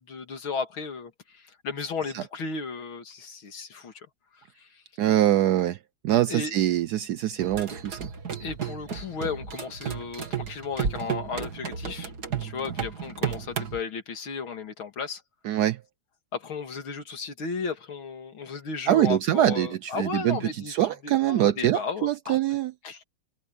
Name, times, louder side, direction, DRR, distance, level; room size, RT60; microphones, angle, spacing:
voice 1, 0.0-4.8 6.3-6.5 8.4-12.1 12.4-15.2 16.3-20.7 21.0-22.4 22.8-23.0, left 5 dB, 85° left, 3.1 m, -35 dB
voice 2, 5.0-5.8 6.0-8.1 15.4-15.8 18.9-20.4 20.7-22.7, right 12 dB, 75° right, 0.9 m, -24 dB
sound 1, 7.4-13.8, right 6 dB, 50° right, 2.6 m, -33 dB
omnidirectional pair, 2.2 m